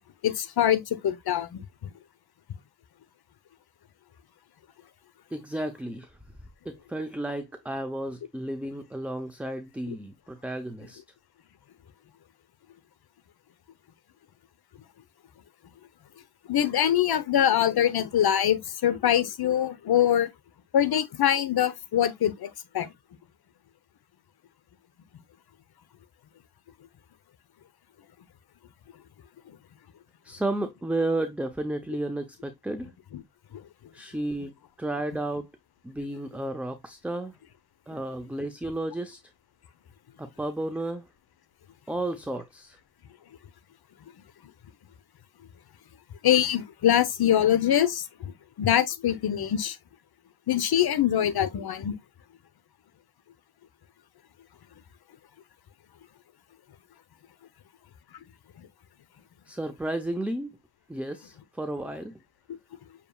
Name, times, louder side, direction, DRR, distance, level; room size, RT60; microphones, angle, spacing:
voice 1, 0.2-1.6 16.5-20.3 20.7-22.9 46.2-48.3 48.6-49.8 50.5-51.9, left 10 dB, 50° left, 0.9 m, -24 dB
voice 2, 5.3-6.1 6.6-11.0 30.2-32.9 33.9-35.5 35.8-37.3 37.9-39.2 40.2-41.1 41.9-42.8 59.5-60.5 60.9-62.1, right 1 dB, 5° right, 0.6 m, -32 dB
6.7 x 2.9 x 2.3 m
cardioid pair, 70°, 47 cm